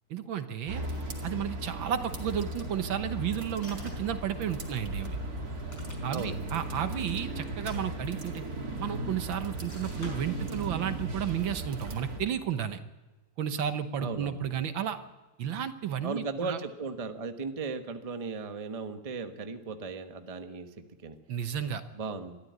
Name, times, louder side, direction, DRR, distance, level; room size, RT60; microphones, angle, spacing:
voice 1, 0.1-0.8 1.2-5.2 6.0-8.4 8.8-12.8 13.4-15.0 15.4-16.6 21.3-21.8, right 9 dB, 70° right, 10 dB, 1.8 m, -32 dB
sound 1, 0.7-12.2, right 1 dB, 45° right, 2.9 m, -37 dB
sound 2, 3.6-4.2 5.5-6.4 7.5-8.5 9.7-10.7, left 1 dB, 50° left, 5.6 m, -48 dB
voice 2, 6.1-6.4 14.0-14.4 16.0-21.2 21.9-22.4, right 4 dB, 25° right, 7 dB, 0.9 m, -36 dB
22.0 x 14.0 x 9.5 m, 1.2 s
omnidirectional pair, 2.3 m